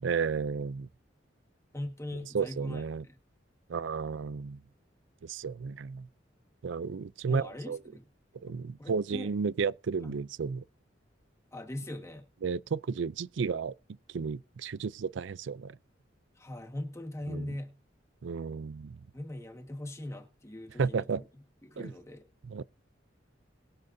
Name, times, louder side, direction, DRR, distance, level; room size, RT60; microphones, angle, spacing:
voice 1, 0.0-0.9 2.3-3.1 3.7-4.6 5.2-6.1 6.6-7.8 8.4-10.6 12.4-13.7 14.1-15.8 17.3-17.5 18.2-19.0 20.8-21.2 21.8-21.9 22.5-22.6, right 5 dB, 75° right, 0.4 m, -32 dB
voice 2, 1.7-3.2 6.9-8.1 8.5-9.3 10.0-10.3 11.5-12.3 16.4-17.8 19.1-21.1 21.3-22.3, left 1 dB, 15° left, 1.6 m, -41 dB
21.5 x 7.9 x 2.7 m
head